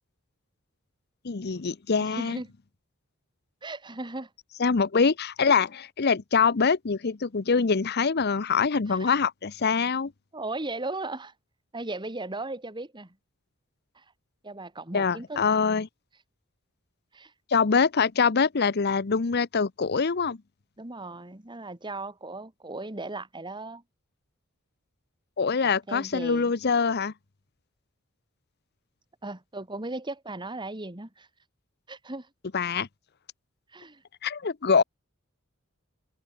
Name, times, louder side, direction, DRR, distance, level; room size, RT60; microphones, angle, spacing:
voice 1, 1.2-2.4 4.6-10.1 14.9-15.9 17.5-20.4 25.4-27.1 32.5-32.9 34.2-34.8, left 5 dB, 50° left, 0.7 m, -24 dB
voice 2, 2.0-2.5 3.6-4.3 8.9-9.1 10.3-11.3 11.7-13.2 14.0-14.1 14.4-15.4 17.1-17.3 20.8-23.8 25.6-26.5 29.2-31.3 31.9-32.3 33.7-34.0, right 2 dB, 20° right, 1.9 m, -37 dB
open air
head